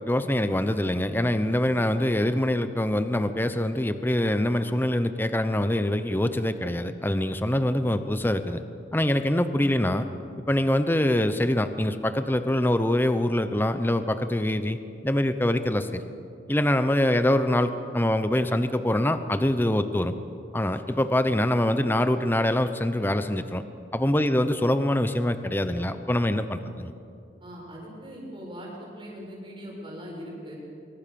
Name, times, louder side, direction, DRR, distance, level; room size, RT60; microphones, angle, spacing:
voice 1, 0.1-8.6 8.9-10.1 10.5-14.8 15.0-16.0 16.5-20.1 20.5-23.6 23.9-26.9, left 1 dB, 10° left, 10 dB, 0.8 m, -24 dB
voice 2, 27.4-30.6, equal, 25° right, -3 dB, 7.4 m, -40 dB
25.5 x 23.5 x 7.0 m, 2.6 s
head